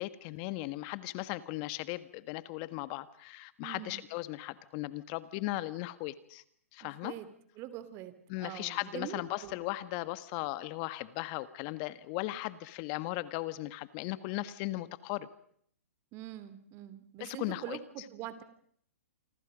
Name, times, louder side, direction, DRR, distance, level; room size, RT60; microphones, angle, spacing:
voice 1, 0.0-6.4 6.7-7.1 8.3-15.3 17.2-17.8, left 18 dB, 40° left, 14 dB, 1.5 m, -37 dB
voice 2, 3.6-4.0 6.8-7.3 7.6-8.1 8.4-9.5 16.1-18.4, right 12 dB, 35° right, 12 dB, 3.0 m, -44 dB
28.5 x 25.0 x 5.2 m, 0.63 s
hypercardioid pair, 125°, 8 cm